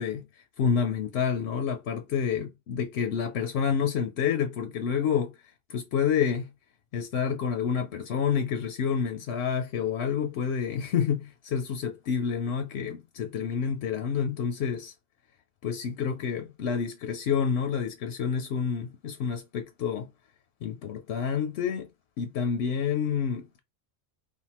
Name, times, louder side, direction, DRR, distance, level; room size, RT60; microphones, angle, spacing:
voice 1, 0.0-5.3 5.7-6.5 6.9-14.9 15.6-20.1 20.6-21.9 22.2-23.6, left 7 dB, 85° left, 0.9 m, -28 dB
3.5 x 2.5 x 2.9 m
omnidirectional pair, 1.1 m